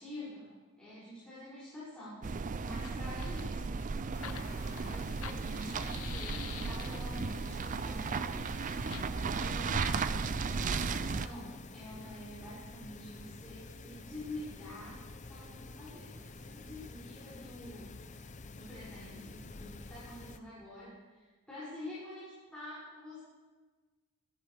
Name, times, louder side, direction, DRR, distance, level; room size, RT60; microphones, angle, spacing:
voice 1, 0.0-2.3 2.6-10.1 10.5-17.9 18.5-23.2, left 1 dB, 5° left, -11 dB, 6.5 m, -47 dB
sound 1, 2.2-11.3, right 4 dB, 35° right, 0.4 m, -35 dB
Fire, 2.7-7.2 8.8-9.1, left 9 dB, 90° left, 0.7 m, -47 dB
sound 2, 4.1-20.4, left 3 dB, 35° left, 0.6 m, -49 dB
23.5 x 13.5 x 3.5 m, 1.3 s
head